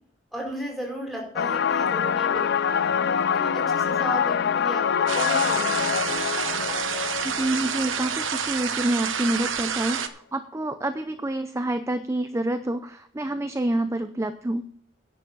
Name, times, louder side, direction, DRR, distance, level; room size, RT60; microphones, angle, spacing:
voice 1, 0.3-6.2, equal, ahead, -1 dB, 4.8 m, -35 dB
sound 1, 1.4-8.9, left 7 dB, 60° left, 0.5 m, -25 dB
sound 2, 5.1-10.1, right 7 dB, 80° right, 1.0 m, -28 dB
voice 2, 7.2-14.6, right 1 dB, 15° right, 9 dB, 0.6 m, -27 dB
10.0 x 6.9 x 7.4 m, 0.62 s
head